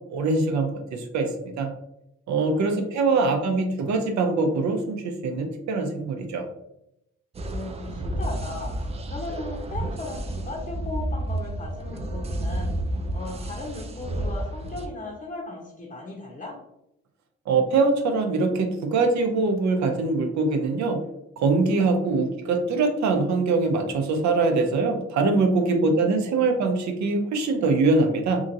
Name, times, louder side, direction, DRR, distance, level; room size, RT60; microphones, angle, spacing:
voice 1, 0.1-1.7 2.3-6.4 17.5-21.0 21.4-28.4, right 3 dB, 65° right, 4 dB, 0.6 m, -23 dB
voice 2, 2.4-2.8 3.1-3.7 7.5-12.7 13.1-16.5 25.6-26.6, left 2 dB, 25° left, -4 dB, 0.8 m, -37 dB
sound 1, 7.3-14.9, right 1 dB, 20° right, 0.3 m, -31 dB
2.9 x 2.5 x 2.6 m, 0.82 s
cardioid pair, 90°, 30 cm